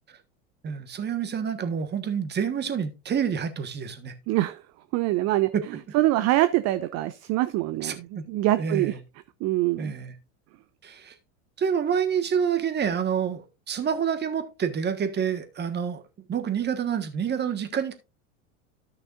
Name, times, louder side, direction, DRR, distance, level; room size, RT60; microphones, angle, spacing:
voice 1, 0.6-4.1 5.5-5.6 7.8-8.2 8.6-9.0 9.8-10.1 10.8-11.1 11.6-16.0 16.3-17.9, right 7 dB, 30° right, 1.4 m, -28 dB
voice 2, 4.3-4.6 4.9-5.5 5.9-8.9 9.4-9.9, right 16 dB, 45° right, 0.6 m, -24 dB
13.0 x 6.2 x 2.5 m
hypercardioid pair, 95°, 36 cm